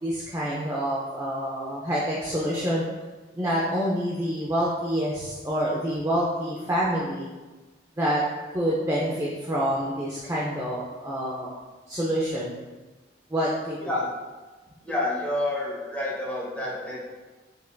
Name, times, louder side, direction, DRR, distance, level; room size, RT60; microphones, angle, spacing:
voice 1, 0.0-2.8 3.3-7.3 8.0-8.2 8.5-11.6 11.9-12.6 13.3-13.8, equal, 20° right, -6 dB, 0.4 m, -27 dB
voice 2, 14.8-17.0, left 1 dB, 10° left, -6 dB, 0.9 m, -28 dB
5.3 x 2.5 x 2.2 m, 1.2 s
head